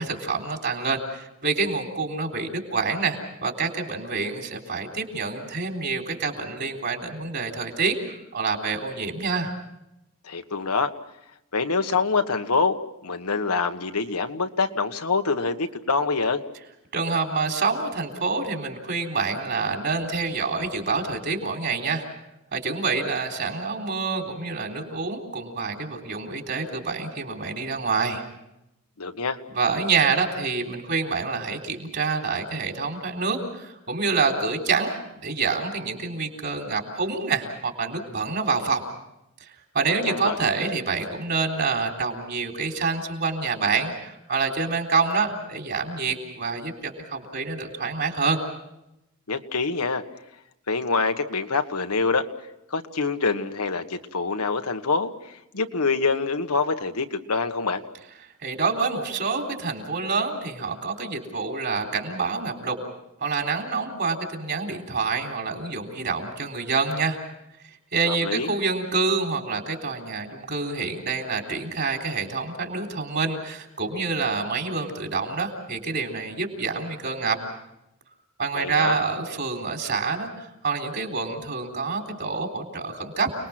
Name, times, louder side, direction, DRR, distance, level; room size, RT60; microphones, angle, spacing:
voice 1, 0.0-9.5 16.9-22.1 22.5-28.2 29.5-38.8 39.4-39.5 39.7-48.4 58.4-62.8 63.2-67.2 67.9-77.4 78.4-83.3, right 4 dB, 50° right, 3 dB, 3.7 m, -27 dB
voice 2, 10.2-10.9 11.5-12.8 13.0-16.4 29.0-29.4 40.1-40.4 49.3-50.0 50.7-52.3 52.7-57.8 68.0-68.5 78.5-79.0, left 4 dB, 90° left, 7 dB, 1.5 m, -25 dB
29.5 x 20.5 x 6.0 m, 0.87 s
head